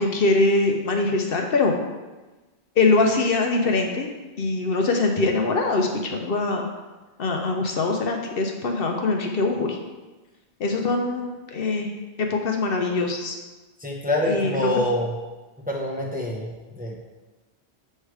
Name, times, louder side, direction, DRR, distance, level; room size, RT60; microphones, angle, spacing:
voice 1, 0.0-1.8 2.8-4.1 4.4-6.6 7.2-9.8 10.6-11.9 12.2-13.4 14.3-14.7, left 3 dB, 65° left, 2 dB, 0.8 m, -23 dB
voice 2, 13.8-15.1 15.7-17.0, left 1 dB, 10° right, -3 dB, 0.7 m, -26 dB
7.7 x 3.3 x 4.7 m, 1.2 s
omnidirectional pair, 1.1 m